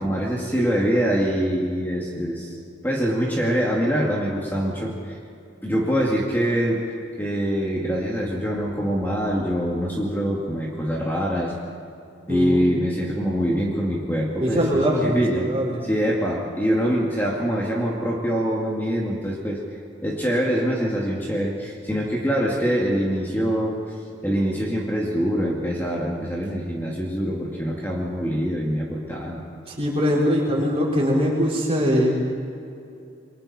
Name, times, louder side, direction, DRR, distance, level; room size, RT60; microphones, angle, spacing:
voice 1, 0.0-2.6 2.8-5.2 5.6-6.8 7.2-11.5 12.3-15.5 15.8-19.6 20.0-23.8 24.2-29.4, equal, 10° left, -4 dB, 2.4 m, -24 dB
voice 2, 12.3-12.6 14.4-15.8 29.7-32.1, equal, 30° right, -3 dB, 5.0 m, -22 dB
28.5 x 23.5 x 4.4 m, 2.6 s
head